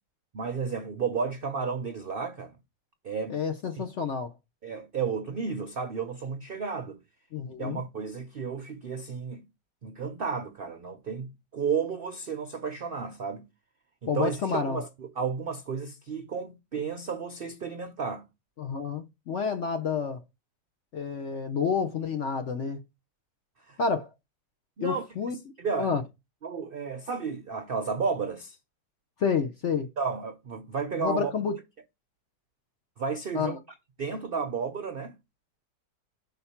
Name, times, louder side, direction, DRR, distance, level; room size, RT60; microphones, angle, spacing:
voice 1, 0.3-2.5 3.0-3.4 3.8-3.9 4.6-7.0 7.6-9.4 9.8-13.5 14.0-18.2 23.7-23.8 24.8-25.1 25.6-26.0 26.4-28.6 30.0-31.3 33.0-33.6 34.0-35.2, right 5 dB, 65° right, 0.5 m, -32 dB
voice 2, 3.3-4.3 7.3-7.8 14.1-14.8 18.6-20.2 20.9-22.8 23.8-24.1 24.8-25.3 25.8-26.0 29.2-29.9 31.0-31.5 33.3-33.6, left 6 dB, 55° left, 0.8 m, -29 dB
5.8 x 4.0 x 5.7 m
omnidirectional pair, 1.9 m